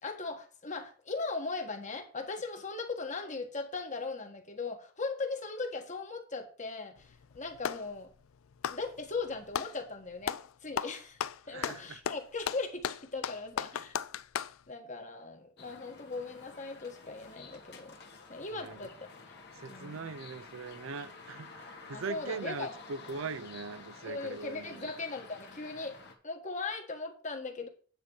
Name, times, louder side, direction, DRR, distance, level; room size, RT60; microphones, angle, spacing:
voice 1, 0.0-8.1 8.7-13.9 14.7-18.0 18.3-19.1 19.7-20.1 21.9-22.7 24.0-26.0 26.2-27.7, left 3 dB, 35° left, 1.5 m, -39 dB
Clapping, 7.0-7.9 8.5-9.8 10.2-10.5 10.8-14.6, left 8 dB, 90° left, 0.4 m, -35 dB
voice 2, 11.5-12.0 18.5-18.8 19.5-24.9, right 4 dB, 75° right, 0.5 m, -41 dB
sound 1, 15.6-26.1, left 4 dB, 55° left, 1.7 m, -51 dB
9.3 x 4.4 x 7.0 m
head